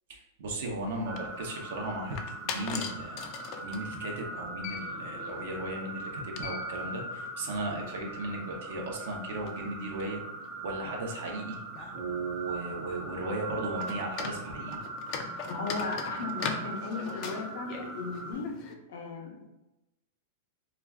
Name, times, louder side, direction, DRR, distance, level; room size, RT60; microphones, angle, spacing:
voice 1, 0.1-2.2 2.4-3.3 3.6-10.2 10.6-11.6 11.9-14.8, right 2 dB, 70° right, 1 dB, 0.6 m, -36 dB
sound 1, 0.8-18.7, left 5 dB, 45° left, 0.3 m, -43 dB
sound 2, 1.1-18.3, right 3 dB, 25° right, 0.4 m, -41 dB
voice 2, 15.5-18.5 18.9-19.5, left 4 dB, 80° left, 1 dB, 0.7 m, -36 dB
2.4 x 2.3 x 3.3 m, 1.0 s
supercardioid pair, 135°, 0 cm